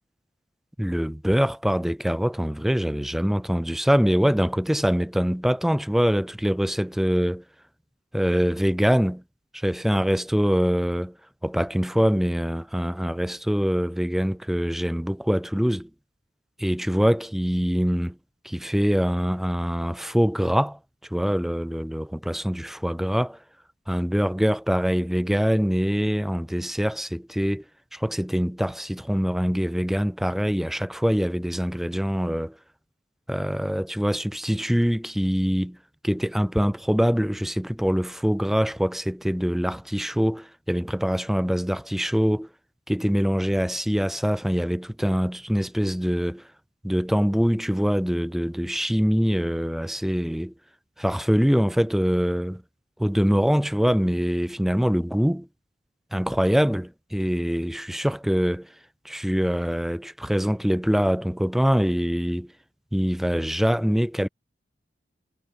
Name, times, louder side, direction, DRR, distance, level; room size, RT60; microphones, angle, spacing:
voice 1, 0.8-7.4 8.1-9.2 9.5-11.1 11.4-15.9 16.6-18.2 18.4-20.8 21.1-23.4 23.9-27.6 27.9-32.5 33.3-35.8 36.0-42.5 42.9-46.4 46.8-50.5 51.0-52.6 53.0-55.5 56.1-58.7 59.1-62.5 62.9-64.3, equal, ahead, 0.3 m, -24 dB
head